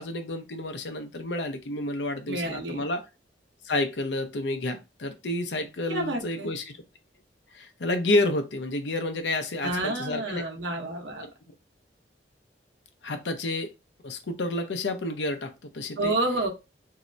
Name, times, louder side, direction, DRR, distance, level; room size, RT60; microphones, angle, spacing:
voice 1, 0.0-3.0 3.6-6.8 7.5-10.4 11.2-11.3 13.0-13.7 14.0-16.1, left 2 dB, 80° left, 6 dB, 0.7 m, -30 dB
voice 2, 2.3-2.8 5.9-6.5 9.6-11.3 16.0-16.5, right 2 dB, 90° right, 2 dB, 0.9 m, -29 dB
3.1 x 2.7 x 2.6 m, 0.25 s
head